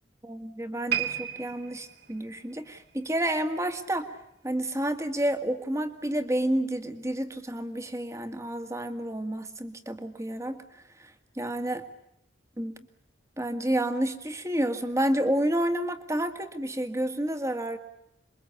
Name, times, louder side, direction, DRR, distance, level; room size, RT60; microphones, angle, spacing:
voice 1, 0.2-4.1 4.4-10.6 11.4-11.8 12.6-12.8 13.4-17.8, right 1 dB, 15° right, 8 dB, 2.0 m, -29 dB
sound 1, 0.9-4.2 4.5-4.8 5.4-5.5, right 11 dB, 55° right, 3.0 m, -35 dB
27.5 x 23.0 x 8.5 m, 0.77 s
head